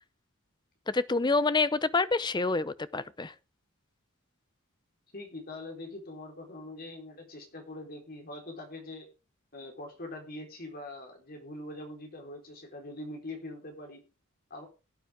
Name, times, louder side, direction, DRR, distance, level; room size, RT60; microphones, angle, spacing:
voice 1, 0.9-3.3, left 3 dB, 20° left, 0.6 m, -27 dB
voice 2, 5.1-9.1 9.5-14.0 14.5-14.7, left 2 dB, 45° left, 4.2 m, -43 dB
17.0 x 9.1 x 3.6 m
head